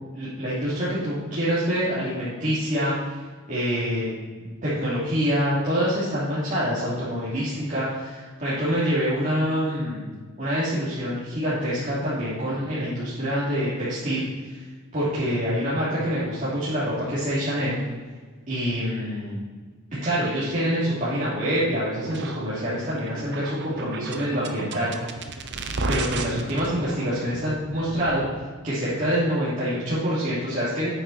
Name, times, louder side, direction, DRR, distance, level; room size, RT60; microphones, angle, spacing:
voice 1, 0.1-2.9 3.5-4.1 4.4-10.0 10.4-14.5 14.9-17.8 18.5-19.4 20.0-24.9 25.9-28.2 28.6-30.9, equal, 35° right, -12 dB, 3.2 m, -26 dB
sound 1, 22.0-28.4, right 3 dB, 55° right, 0.8 m, -34 dB
9.0 x 8.7 x 4.4 m, 1.4 s
head